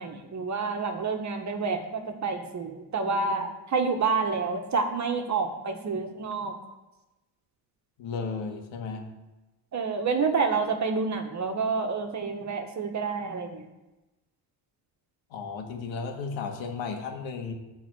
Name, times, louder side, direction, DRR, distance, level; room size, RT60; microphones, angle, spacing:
voice 1, 0.0-6.5 9.7-13.6, right 4 dB, 40° right, 5 dB, 1.5 m, -28 dB
voice 2, 8.0-9.1 15.3-17.5, left 4 dB, 80° left, 3 dB, 1.9 m, -34 dB
12.0 x 4.3 x 7.8 m, 1.0 s
cardioid pair, 115°, 46 cm